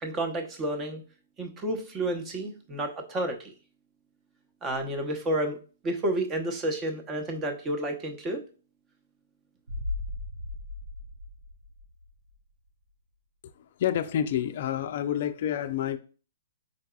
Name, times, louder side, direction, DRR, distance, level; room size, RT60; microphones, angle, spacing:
voice 1, 0.0-1.0 1.4-3.5 4.6-5.6 5.8-8.4, right 1 dB, 20° right, 0.8 m, -30 dB
sound 1, 9.7-12.4 12.7-12.8, left 2 dB, 80° right, 0.5 m, -37 dB
voice 2, 13.6-16.0, left 10 dB, 50° left, 0.4 m, -29 dB
4.6 x 3.9 x 2.3 m
hypercardioid pair, 125°, 0 cm